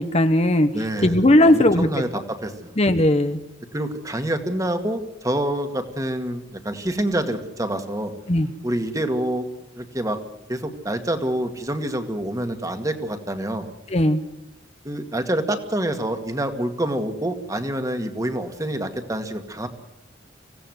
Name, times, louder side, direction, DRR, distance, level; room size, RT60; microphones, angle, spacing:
voice 1, 0.0-0.7 1.0-1.9 2.8-3.4 8.3-8.5 13.9-14.2, left 1 dB, 35° left, 9 dB, 1.0 m, -17 dB
voice 2, 0.7-2.7 3.7-8.1 8.6-9.5 9.7-10.2 10.5-13.7 14.8-19.7, right 1 dB, 20° right, 7 dB, 2.0 m, -27 dB
25.5 x 17.0 x 7.9 m, 0.88 s
head